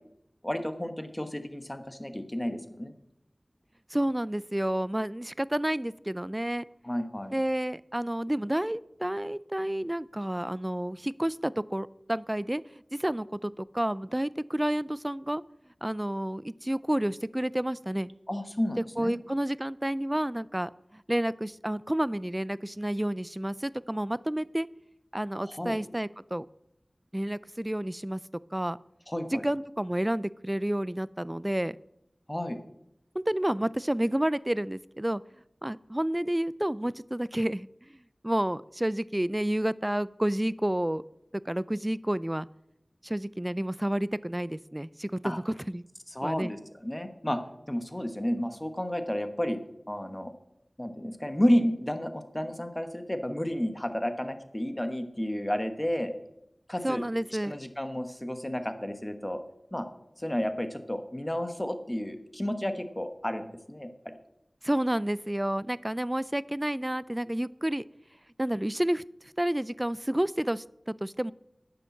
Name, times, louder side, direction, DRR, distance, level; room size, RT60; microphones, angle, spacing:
voice 1, 0.4-2.9 6.8-7.3 18.3-19.1 25.5-25.8 29.1-29.4 32.3-32.6 45.2-45.4 46.1-49.6 49.9-50.3 50.8-56.1 56.7-57.0 57.4-59.4 59.7-59.8 60.2-64.1, equal, 20° left, 8 dB, 1.2 m, -31 dB
voice 2, 3.9-6.6 7.3-15.4 15.8-18.1 19.0-24.7 25.1-26.5 27.1-28.2 28.5-28.8 29.3-31.8 33.1-35.2 35.6-37.7 38.2-41.0 41.5-42.5 43.0-45.8 46.2-46.5 56.8-57.5 64.6-67.8 68.4-69.0 69.4-71.3, right 1 dB, 20° right, 19 dB, 0.3 m, -30 dB
9.8 x 7.0 x 7.2 m, 0.82 s
wide cardioid pair, 50°, 0 cm